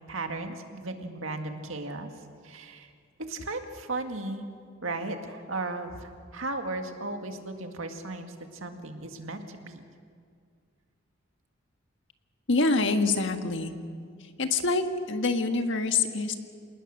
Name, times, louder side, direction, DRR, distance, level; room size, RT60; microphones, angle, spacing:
voice 1, 0.1-2.1 2.4-2.9 3.3-4.5 4.8-8.3 8.6-9.8, right 2 dB, 85° right, 5 dB, 2.0 m, -35 dB
voice 2, 12.5-13.7 14.4-16.4, left 3 dB, 65° left, 6 dB, 1.6 m, -25 dB
27.5 x 19.0 x 6.6 m, 2.1 s
head